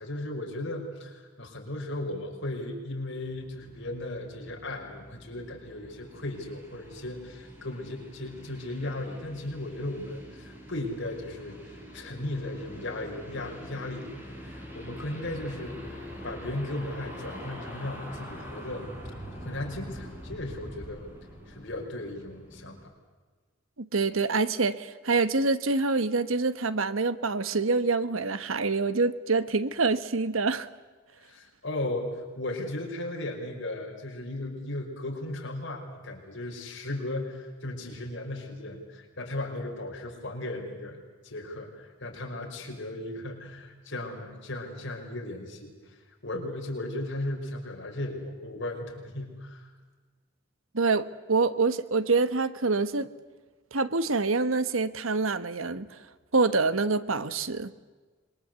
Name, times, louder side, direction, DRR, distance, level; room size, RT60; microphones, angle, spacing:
voice 1, 0.0-16.0 16.2-18.9 19.4-21.0 21.5-22.9 31.2-41.0 41.2-46.0 46.2-49.7, left 1 dB, 60° left, 1 dB, 5.7 m, -36 dB
sound 1, 3.3-22.8, equal, 10° right, 5.3 m, -44 dB
voice 2, 23.8-30.7 50.7-53.1 53.7-56.0 56.3-57.7, right 3 dB, 85° right, 13 dB, 1.3 m, -26 dB
26.5 x 23.0 x 8.2 m, 1.4 s
head